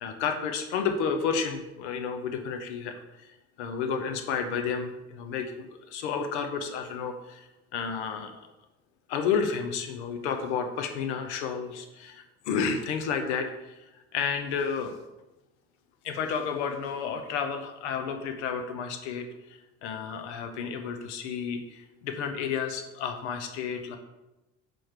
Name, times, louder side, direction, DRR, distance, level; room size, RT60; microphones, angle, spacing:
voice 1, 0.0-8.4 9.1-13.8 14.1-15.0 16.0-24.0, left 6 dB, 85° left, 6 dB, 0.8 m, -31 dB
6.2 x 4.9 x 4.5 m, 1.0 s
hypercardioid pair, 75°, 33 cm